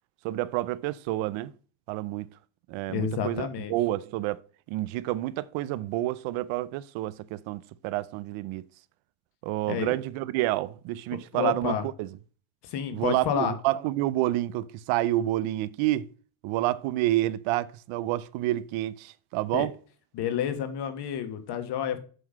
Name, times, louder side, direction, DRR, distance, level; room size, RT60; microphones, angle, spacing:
voice 1, 0.2-1.5 1.9-2.3 2.7-4.4 4.7-8.6 9.4-12.1 12.9-16.1 16.4-19.7, right 16 dB, 80° right, 0.7 m, -29 dB
voice 2, 2.9-3.7 9.7-9.9 11.3-11.9 12.6-13.6 19.5-19.7 20.1-22.0, left 8 dB, 55° left, 1.5 m, -29 dB
7.8 x 4.0 x 6.3 m
cardioid pair, 150°, 47 cm